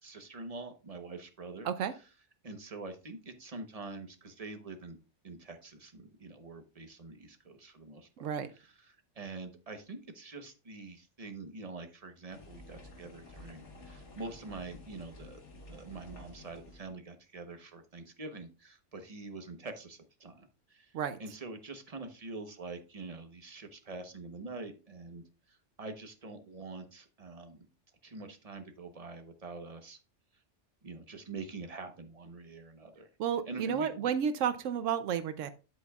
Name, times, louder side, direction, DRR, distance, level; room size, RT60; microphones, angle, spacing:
voice 1, 0.0-1.7 2.4-5.0 5.2-8.3 8.5-15.4 15.7-20.9 21.2-25.2 25.8-27.7 28.0-30.0 30.8-33.1 33.5-34.2, right 3 dB, 30° right, 7 dB, 1.0 m, -45 dB
sound 1, 12.3-16.9, left 2 dB, 70° left, 1.9 m, -51 dB
voice 2, 33.2-35.5, right 8 dB, 90° right, 12 dB, 1.0 m, -31 dB
12.0 x 5.3 x 2.3 m, 0.31 s
omnidirectional pair, 1.3 m